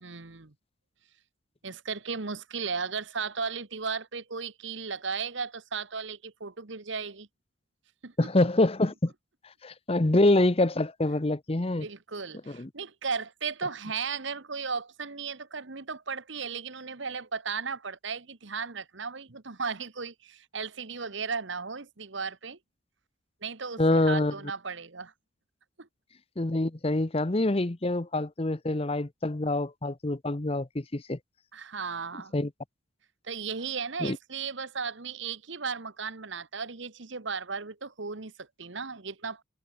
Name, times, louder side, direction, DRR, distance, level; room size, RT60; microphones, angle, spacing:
voice 1, 0.0-0.5 1.6-7.3 8.0-8.1 11.8-22.6 23.4-25.1 25.8-25.9 31.5-32.3 33.2-39.4, right 5 dB, 65° right, 1.3 m, -35 dB
voice 2, 8.2-9.1 9.6-11.9 12.5-12.7 23.8-24.3 26.4-31.2 32.3-32.5 34.0-34.2, left 2 dB, 30° left, 0.8 m, -25 dB
head